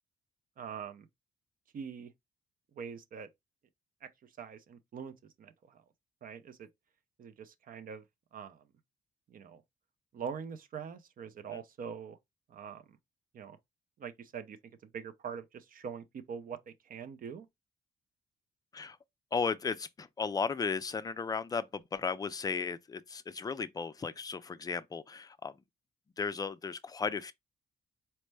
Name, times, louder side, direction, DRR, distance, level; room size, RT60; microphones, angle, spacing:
voice 1, 0.6-1.1 1.7-2.1 2.7-3.3 4.0-5.8 6.2-6.7 7.2-8.0 8.3-8.6 9.3-9.6 10.1-12.2 12.5-13.0 13.3-13.6 14.0-14.6 14.9-17.5, right 7 dB, 55° right, 0.5 m, -43 dB
voice 2, 19.3-25.5 26.2-27.3, left 5 dB, 20° left, 0.4 m, -35 dB
4.3 x 2.0 x 3.3 m
cardioid pair, 105°, 17 cm